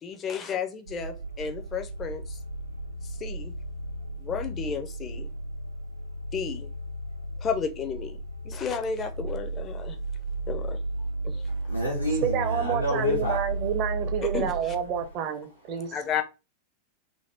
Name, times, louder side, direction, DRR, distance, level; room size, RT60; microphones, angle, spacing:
voice 1, 0.0-2.4 3.0-3.5 4.2-5.3 6.3-6.7 7.4-8.2 8.4-10.0 10.5-10.8 11.2-11.5 14.3-14.7 15.9-16.2, left 6 dB, 25° left, 0.5 m, -32 dB
sound 1, 0.9-15.1, right 2 dB, 90° right, 0.3 m, -34 dB
voice 2, 11.5-13.4, left 1 dB, 85° left, 0.8 m, -29 dB
voice 3, 12.2-15.9, right 9 dB, 40° right, 0.6 m, -29 dB
2.6 x 2.5 x 3.2 m
figure-of-eight pair, 90°, 0 cm